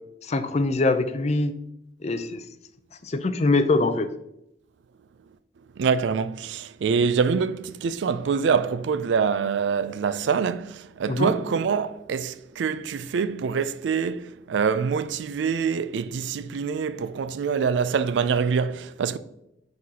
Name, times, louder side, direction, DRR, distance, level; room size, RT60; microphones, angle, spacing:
voice 1, 0.2-1.5 2.0-2.5 3.0-4.1 11.1-11.3, left 2 dB, 35° left, 0.4 m, -23 dB
voice 2, 5.8-19.2, right 6 dB, 75° right, 0.3 m, -25 dB
9.4 x 3.9 x 2.8 m
head